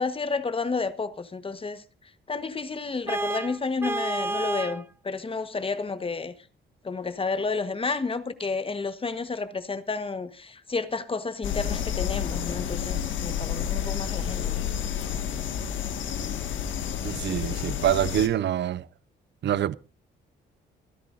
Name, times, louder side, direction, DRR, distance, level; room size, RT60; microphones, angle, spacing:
voice 1, 0.0-6.3 6.8-14.6, left 4 dB, 25° left, 1.2 m, -31 dB
Vehicle horn car horn honking, 3.1-4.8, right 2 dB, 10° right, 0.9 m, -30 dB
sound 1, 11.4-18.3, left 9 dB, 75° left, 1.8 m, -30 dB
voice 2, 17.0-18.9 19.4-19.7, right 11 dB, 60° right, 0.7 m, -25 dB
25.5 x 10.5 x 2.6 m
cardioid pair, 90°, 20 cm